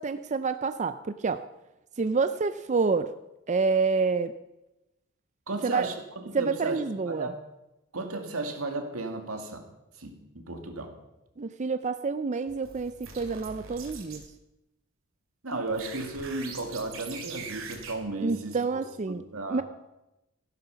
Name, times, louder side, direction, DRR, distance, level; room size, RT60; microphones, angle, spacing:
voice 1, 0.0-1.4 2.0-3.1 3.5-4.3 5.6-5.9 6.3-7.3 11.4-14.2 18.2-19.2 19.5-19.6, right 4 dB, 35° right, 11 dB, 0.5 m, -28 dB
voice 2, 5.5-6.8 7.1-7.4 7.9-9.6 10.0-10.9 15.4-18.8 19.1-19.6, right 2 dB, 85° right, 4 dB, 2.2 m, -34 dB
sound 1, 12.5-14.2 15.7-17.9, right 5 dB, 70° right, 2.9 m, -42 dB
14.5 x 11.5 x 5.8 m, 0.94 s
head